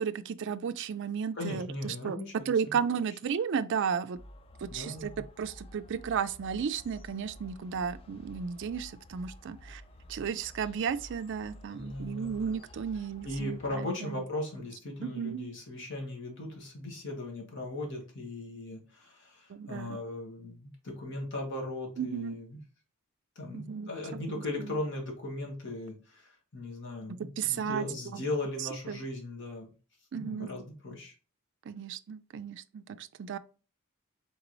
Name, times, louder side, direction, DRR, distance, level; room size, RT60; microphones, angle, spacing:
voice 1, 0.0-2.2 2.5-4.2 4.6-9.8 10.1-14.2 15.0-15.5 19.5-20.0 22.0-22.4 23.5-23.9 24.6-24.8 27.4-27.9 28.1-28.2 28.9-29.0 30.1-30.5 31.7-33.4, right 7 dB, 55° right, 0.4 m, -34 dB
voice 2, 1.3-2.8 4.7-5.2 11.7-12.4 13.2-22.6 23.3-29.7 30.2-31.1, left 1 dB, 55° left, 1.4 m, -38 dB
sound 1, 4.1-13.7, equal, 25° left, 0.4 m, -51 dB
3.9 x 3.6 x 3.0 m
head